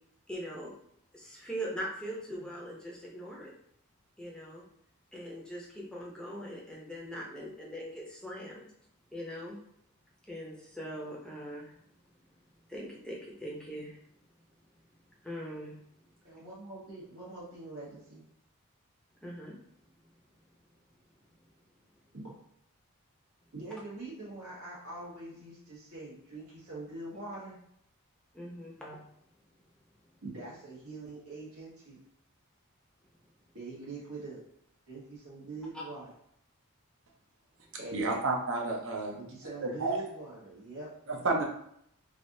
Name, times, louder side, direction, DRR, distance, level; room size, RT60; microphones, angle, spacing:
voice 1, 0.3-0.7 1.1-3.5 4.2-4.6 5.1-8.6 9.1-9.6 10.3-11.8 12.7-14.0 15.2-15.8 19.2-19.6 20.0-20.1 28.3-29.0 35.7-35.8, equal, 5° left, -4 dB, 0.6 m, -41 dB
voice 2, 16.2-18.2 22.1-22.3 23.5-27.5 30.2-32.0 33.5-34.4 34.9-36.1 37.7-38.2 39.2-40.9, right 2 dB, 90° right, -7 dB, 1.2 m, -43 dB
voice 3, 37.9-39.2 39.6-40.0 41.1-41.4, right 3 dB, 60° right, 0 dB, 0.6 m, -30 dB
3.3 x 2.4 x 2.6 m, 0.71 s
head